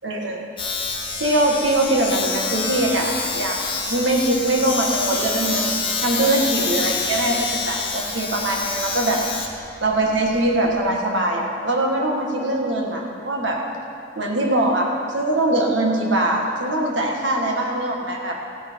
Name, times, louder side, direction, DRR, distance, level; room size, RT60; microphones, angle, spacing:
voice 1, 0.0-0.4 1.2-3.6 3.9-5.7 6.0-9.2 9.8-13.6 14.2-18.4, right 1 dB, 80° right, 0 dB, 1.9 m, -22 dB
Domestic sounds home sounds, 0.6-11.0, left 4 dB, 30° left, 1.4 m, -27 dB
15.5 x 10.0 x 4.7 m, 2.5 s
head